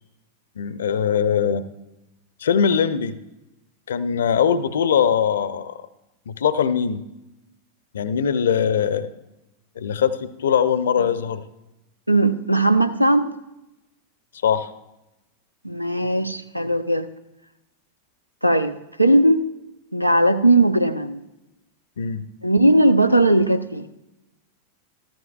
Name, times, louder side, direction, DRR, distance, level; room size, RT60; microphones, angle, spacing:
voice 1, 0.6-1.6 2.4-3.2 3.9-5.8 6.3-7.0 7.9-9.1 9.8-11.4 14.4-14.7 22.0-22.2, left 7 dB, 65° left, 14 dB, 0.5 m, -21 dB
voice 2, 12.1-13.3 15.6-17.1 18.4-19.4 19.9-21.2 22.4-23.9, right 1 dB, 90° right, 11 dB, 0.5 m, -18 dB
14.0 x 14.0 x 2.3 m, 0.95 s
figure-of-eight pair, 90°, 0 cm